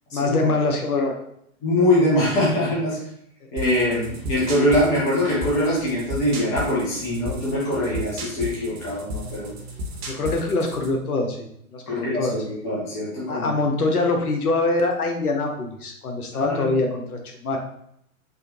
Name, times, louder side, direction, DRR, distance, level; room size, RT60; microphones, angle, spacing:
voice 1, 0.1-1.2 10.1-12.4 13.3-17.6, left 3 dB, 85° left, 2 dB, 0.9 m, -24 dB
voice 2, 1.6-3.0 3.5-9.5 11.9-13.5 16.3-16.7, left 1 dB, 10° left, -6 dB, 0.3 m, -23 dB
sound 1, 3.6-11.0, equal, 45° right, 0.8 m, -34 dB
3.5 x 2.2 x 2.9 m, 0.70 s
hypercardioid pair, 120°, 43 cm